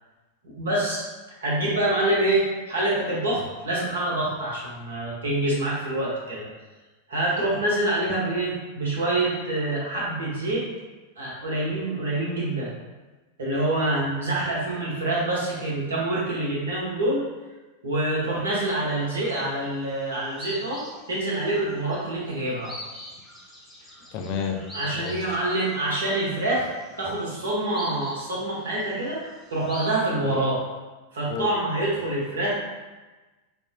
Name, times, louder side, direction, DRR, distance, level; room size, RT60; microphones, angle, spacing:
voice 1, 0.4-1.0 1.4-6.5 7.1-10.6 11.2-12.7 13.4-17.3 17.8-20.8 21.1-22.7 24.7-26.7 27.0-30.6 31.1-32.5, right 1 dB, 70° right, -5 dB, 1.1 m, -26 dB
sound 1, 18.9-19.7 20.0-30.0, left 1 dB, ahead, 0.8 m, -44 dB
voice 2, 24.1-24.6 24.9-25.4 30.2-30.4 31.3-31.5, left 6 dB, 40° left, 2 dB, 0.4 m, -30 dB
5.1 x 2.2 x 2.7 m, 1.2 s
figure-of-eight pair, 90°, 0 cm